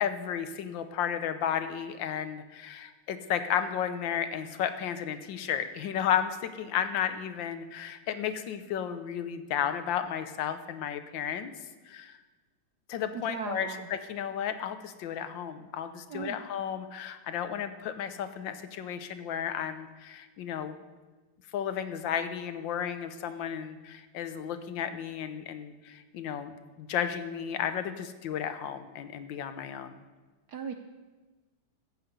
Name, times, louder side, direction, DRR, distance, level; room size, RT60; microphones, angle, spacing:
voice 1, 0.0-11.5 11.9-12.2 12.9-20.8 21.5-29.9, left 9 dB, 70° left, 10 dB, 1.5 m, -33 dB
voice 2, 13.3-13.8 16.1-16.4 30.5-30.7, right 6 dB, 70° right, 7 dB, 1.0 m, -37 dB
15.0 x 6.9 x 8.1 m, 1.3 s
omnidirectional pair, 2.3 m